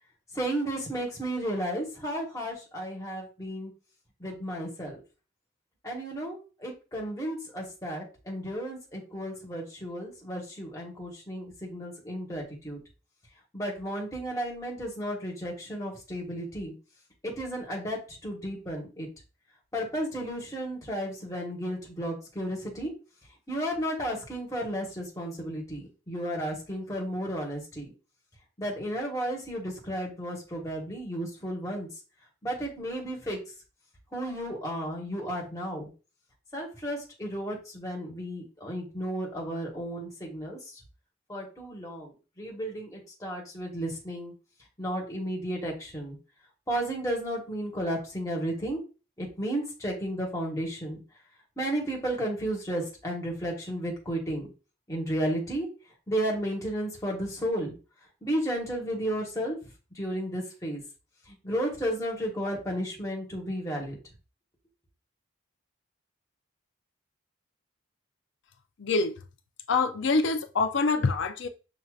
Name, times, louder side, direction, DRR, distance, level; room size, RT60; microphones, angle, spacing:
voice 1, 0.3-3.7 4.2-5.0 5.8-12.8 13.5-16.7 17.2-19.1 19.7-22.9 23.5-27.9 28.6-31.9 32.4-33.4 34.1-35.9 36.5-40.6 41.3-44.3 44.8-46.2 46.7-48.8 49.2-51.0 51.6-54.5 54.9-55.7 56.1-57.7 58.2-59.5 59.9-60.8 61.4-64.0, right 1 dB, 15° left, 1.2 m, -33 dB
voice 2, 68.8-69.2 69.7-71.5, left 4 dB, 60° left, 0.5 m, -25 dB
6.2 x 2.7 x 2.4 m
head